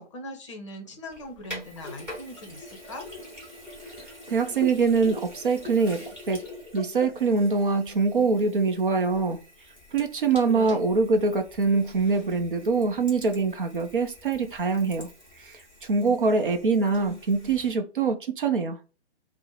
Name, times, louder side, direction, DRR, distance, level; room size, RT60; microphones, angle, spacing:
voice 1, 0.0-3.1 10.5-10.8, left 1 dB, 25° left, 0.7 m, -40 dB
Sink (filling or washing), 1.1-17.7, left 1 dB, 5° right, 0.8 m, -44 dB
voice 2, 4.3-6.5 6.7-9.4 9.9-15.1 15.4-18.8, right 4 dB, 50° right, 0.6 m, -24 dB
4.3 x 2.0 x 4.4 m
figure-of-eight pair, 130°, 34 cm